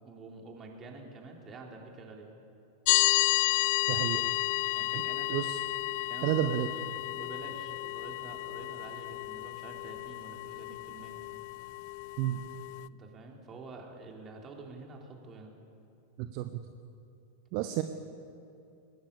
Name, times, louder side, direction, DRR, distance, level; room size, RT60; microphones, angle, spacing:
voice 1, 0.0-2.3 4.7-5.4 6.1-6.6 7.1-11.2 12.9-15.5, right 3 dB, 25° right, 1 dB, 4.0 m, -48 dB
sound 1, 2.9-12.9, left 22 dB, 45° left, 0.4 m, -32 dB
voice 2, 3.9-4.3 5.3-5.6 6.2-6.7 12.2-12.4 16.2-16.6 17.5-17.8, right 13 dB, 45° right, 9 dB, 1.0 m, -31 dB
23.0 x 19.5 x 6.9 m, 2.7 s
figure-of-eight pair, 90°, 0 cm